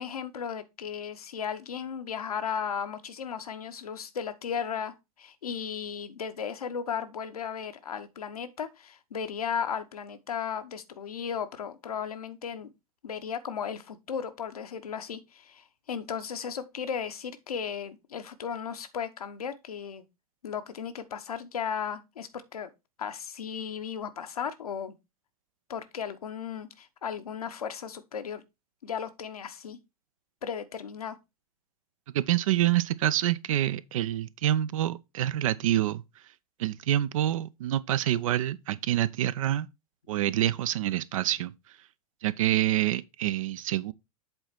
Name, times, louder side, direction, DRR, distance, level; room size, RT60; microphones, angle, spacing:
voice 1, 0.0-12.7 13.0-20.0 20.4-22.7 23.0-24.9 25.7-28.4 28.8-29.8 30.4-31.2, left 7 dB, 75° left, 1.0 m, -35 dB
voice 2, 32.1-36.0 36.6-39.7 40.1-41.5 42.2-43.9, right 12 dB, 60° right, 0.6 m, -27 dB
7.8 x 4.0 x 4.4 m
figure-of-eight pair, 90°, 19 cm